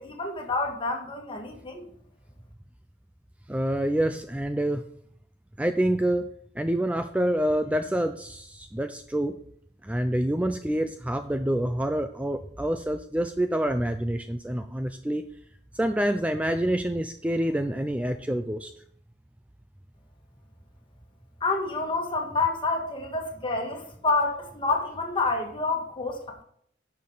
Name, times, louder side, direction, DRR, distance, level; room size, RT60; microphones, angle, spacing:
voice 1, 0.0-1.8 21.4-26.4, left 3 dB, 30° left, 2 dB, 1.8 m, -28 dB
voice 2, 3.5-4.8 5.6-6.3 6.6-9.4 9.8-15.3 15.7-18.7, right 1 dB, 10° right, 8 dB, 0.4 m, -27 dB
11.0 x 6.6 x 4.0 m, 0.65 s
head